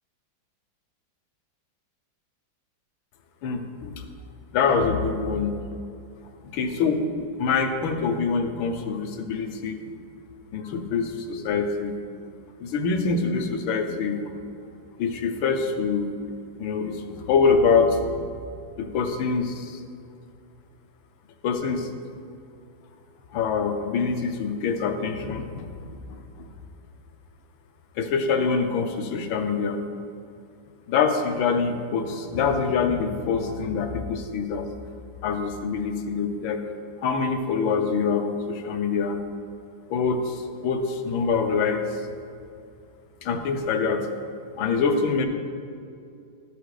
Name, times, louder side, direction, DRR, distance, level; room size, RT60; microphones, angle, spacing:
voice 1, 3.4-4.0 4.5-5.5 6.5-7.0 7.4-9.8 10.5-12.0 12.6-14.3 15.0-16.1 16.6-18.3 18.8-19.8 21.4-21.9 23.3-26.5 28.0-29.8 30.9-34.6 35.2-36.6 37.0-39.2 39.9-42.0 43.2-44.1 44.6-45.3, left 5 dB, 80° left, 6 dB, 1.5 m, -25 dB
12.0 x 5.2 x 4.8 m, 2.5 s
omnidirectional pair, 2.2 m